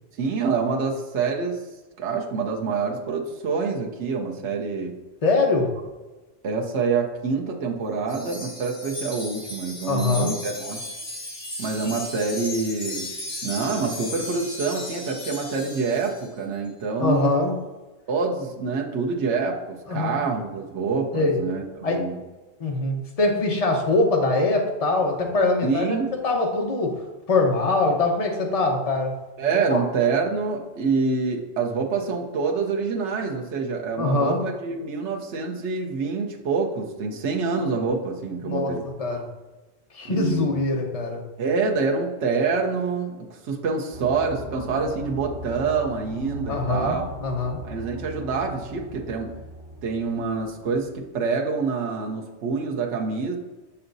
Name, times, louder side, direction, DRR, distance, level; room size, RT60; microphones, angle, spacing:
voice 1, 0.2-1.6 2.0-5.0 6.4-10.8 11.6-13.1 13.4-17.4 18.1-22.2 25.6-26.1 29.4-38.8 40.0-40.6 41.4-47.1 47.6-49.3 49.8-53.4, right 4 dB, 75° right, 0 dB, 1.1 m, -26 dB
voice 2, 5.2-5.7 9.9-10.3 11.8-11.9 17.0-17.5 19.9-20.3 21.1-21.4 21.8-22.0 22.6-25.8 26.2-27.0 27.3-29.1 29.7-29.8 34.0-34.4 38.4-38.7 39.0-39.2 40.0-41.2 46.5-47.6, left 3 dB, 35° left, 1 dB, 0.9 m, -23 dB
Wind chime, 8.1-16.3, left 1 dB, 80° left, 2.4 m, -36 dB
sound 1, 43.9-51.1, equal, 50° right, 1.8 m, -39 dB
6.9 x 5.6 x 2.6 m, 1.2 s
omnidirectional pair, 1.2 m